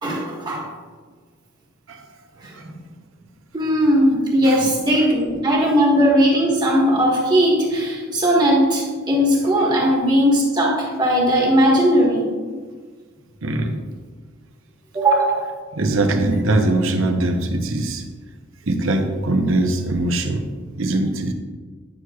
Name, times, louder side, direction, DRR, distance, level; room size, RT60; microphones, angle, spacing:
voice 1, 0.0-0.7 3.5-12.3 14.9-15.5, equal, 20° right, -3 dB, 1.3 m, -18 dB
voice 2, 13.4-13.7 15.7-18.0 18.7-20.4 20.8-21.3, right 2 dB, 70° right, 5 dB, 0.8 m, -21 dB
9.6 x 6.2 x 2.4 m, 1.5 s
head